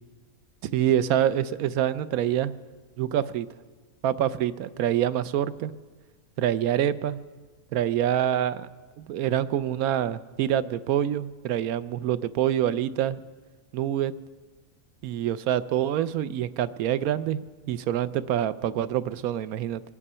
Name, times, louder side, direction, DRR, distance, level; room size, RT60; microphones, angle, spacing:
voice 1, 0.7-2.5 3.0-3.5 4.0-5.7 6.4-7.2 7.7-8.7 9.0-13.2 13.7-14.1 15.0-19.8, right 11 dB, 80° right, 14 dB, 1.1 m, -26 dB
24.0 x 9.9 x 5.5 m, 1.4 s
omnidirectional pair, 1.5 m